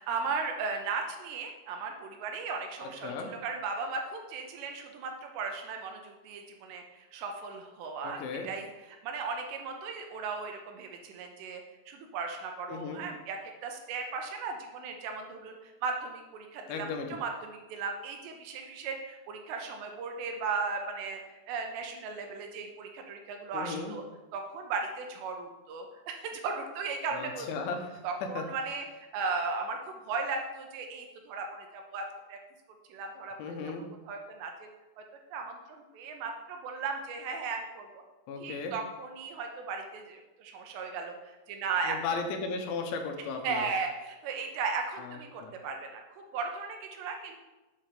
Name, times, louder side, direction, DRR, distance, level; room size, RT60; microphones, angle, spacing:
voice 1, 0.0-8.7 9.0-21.2 21.5-24.0 24.3-27.5 28.0-28.8 29.1-32.4 32.9-33.6 34.1-34.7 35.3-38.0 38.4-42.0 43.4-46.0 46.3-47.4, right 4 dB, 75° right, 3 dB, 2.8 m, -36 dB
voice 2, 2.8-3.3 8.0-8.5 12.7-13.0 16.7-17.2 23.5-24.0 27.1-28.0 28.4-28.5 33.4-33.9 38.3-38.8 41.8-43.7 45.0-45.5, left 4 dB, 80° left, 4 dB, 3.2 m, -36 dB
8.3 x 5.1 x 5.8 m, 1.1 s
omnidirectional pair, 5.4 m